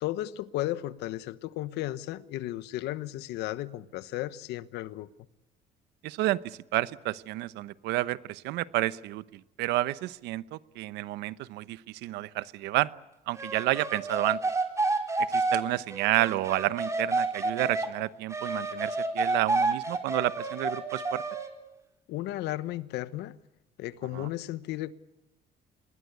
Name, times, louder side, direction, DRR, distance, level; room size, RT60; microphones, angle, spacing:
voice 1, 0.0-5.1 22.1-23.4 23.8-24.9, left 15 dB, 85° left, 1.1 m, -34 dB
voice 2, 6.0-12.9 13.3-14.4 15.3-21.2 24.1-24.3, right 17 dB, 90° right, 0.9 m, -30 dB
sound 1, 13.4-17.9 18.3-21.5, right 3 dB, 15° right, 3.9 m, -29 dB
26.5 x 20.5 x 8.3 m
cardioid pair, 110°, 17 cm